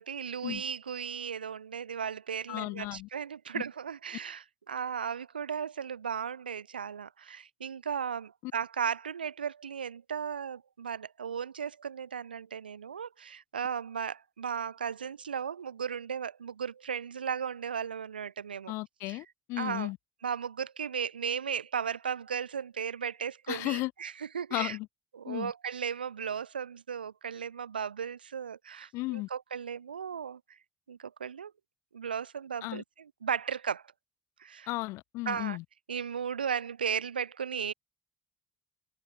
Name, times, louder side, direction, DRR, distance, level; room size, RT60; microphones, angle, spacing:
voice 1, 0.1-18.7 19.1-19.2 19.6-19.9 20.2-24.8 25.1-30.4 30.9-31.5 31.9-33.8 34.4-34.7 35.3-35.6 35.9-37.7, right 7 dB, 85° right, 1.1 m, -36 dB
voice 2, 2.5-3.1 3.5-3.6 8.4-8.5 18.7-20.0 23.5-23.9 24.5-24.9 25.3-25.5 28.9-29.3 32.6-32.8 34.7-35.6, left 21 dB, 65° left, 2.0 m, -34 dB
figure-of-eight pair, 50°, 5 cm